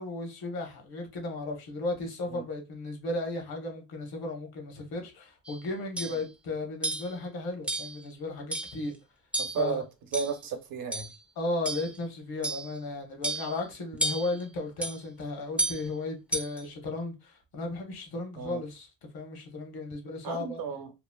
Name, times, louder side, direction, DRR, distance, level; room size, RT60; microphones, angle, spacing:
voice 1, 0.0-8.9 9.5-9.8 11.4-18.9 19.1-20.6, left 2 dB, 65° left, 1.1 m, -35 dB
sound 1, 5.5-5.6 6.0-6.2 6.8-7.1 7.7-8.0 8.5-8.8 9.3-9.7 10.1-10.5 10.9-11.2 11.6-12.0 12.4-12.7 13.2-13.6 14.0-14.4 14.8-15.0 15.6-15.9 16.3-16.6, right 2 dB, 5° right, 0.4 m, -32 dB
voice 2, 9.4-9.8 10.1-11.1 18.4-18.6 20.2-20.9, right 6 dB, 60° right, 0.7 m, -33 dB
3.0 x 2.4 x 2.2 m
cardioid pair, 105°, 40 cm